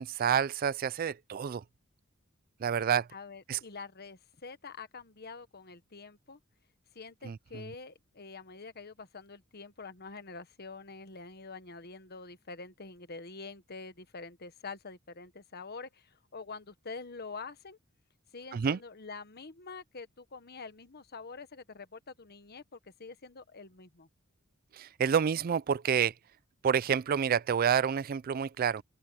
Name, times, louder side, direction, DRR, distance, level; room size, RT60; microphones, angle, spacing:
voice 1, 0.0-1.6 2.6-3.1 3.5-3.6 7.2-7.7 18.5-18.8 24.7-26.1 26.6-28.8, right 7 dB, 45° right, 0.4 m, -28 dB
voice 2, 3.1-6.4 6.9-17.8 18.3-24.1, left 4 dB, 50° left, 1.3 m, -46 dB
open air
head